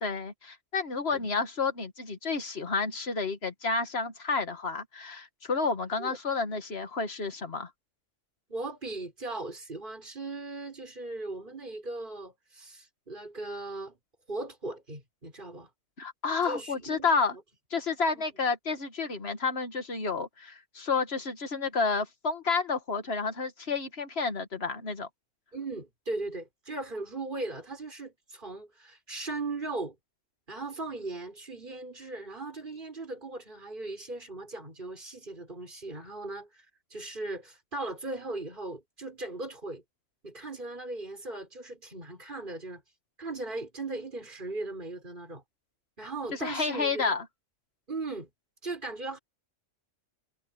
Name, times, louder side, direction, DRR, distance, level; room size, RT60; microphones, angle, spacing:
voice 1, 0.0-7.7 16.0-17.4 17.7-25.1 46.4-47.2, left 4 dB, 55° left, 2.1 m, -30 dB
voice 2, 8.5-14.0 14.3-15.7 16.4-17.1 18.1-18.2 25.5-30.0 30.5-36.7 36.9-39.8 40.2-42.8 43.2-45.4 46.0-47.2 47.9-48.3 48.6-49.2, right 2 dB, 40° right, 5.7 m, -38 dB
omnidirectional pair, 1.2 m